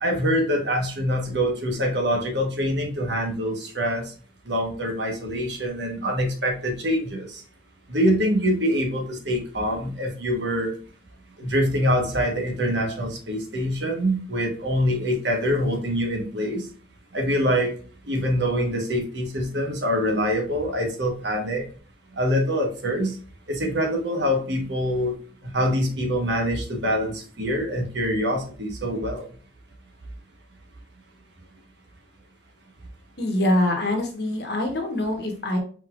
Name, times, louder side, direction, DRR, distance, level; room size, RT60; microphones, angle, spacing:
voice 1, 0.0-4.1 4.5-7.4 7.9-10.7 11.4-16.7 17.1-17.7 18.1-21.6 22.2-23.2 23.5-25.1 25.5-29.3, equal, 65° right, 2 dB, 1.3 m, -25 dB
voice 2, 33.2-35.6, left 1 dB, 55° left, 3 dB, 1.2 m, -24 dB
5.1 x 4.1 x 2.5 m, 0.42 s
head